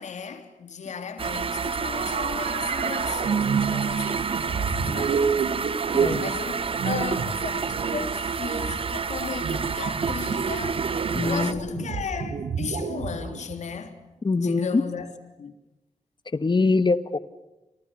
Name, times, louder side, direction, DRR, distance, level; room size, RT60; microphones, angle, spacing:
voice 1, 0.0-5.5 6.2-10.9 11.2-14.0 14.4-15.5, left 6 dB, 75° left, 3.3 m, -36 dB
sound 1, 1.2-11.5, right 5 dB, 50° right, 0.9 m, -29 dB
sound 2, 1.9-13.8, right 6 dB, 85° right, 2.6 m, -29 dB
voice 2, 11.1-11.8 14.2-14.8 16.3-17.2, left 3 dB, 40° left, 1.9 m, -23 dB
30.0 x 29.0 x 6.9 m
cardioid pair, 60°, 12 cm